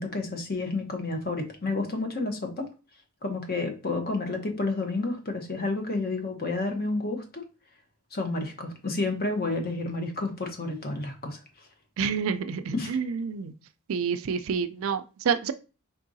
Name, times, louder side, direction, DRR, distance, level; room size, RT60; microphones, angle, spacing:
voice 1, 0.0-2.7 3.2-7.4 8.1-11.4 12.7-13.0, left 2 dB, 45° left, 4 dB, 1.0 m, -30 dB
voice 2, 12.0-13.5 13.9-15.5, right 6 dB, 70° right, 11 dB, 0.4 m, -28 dB
4.6 x 3.6 x 2.7 m, 0.33 s
head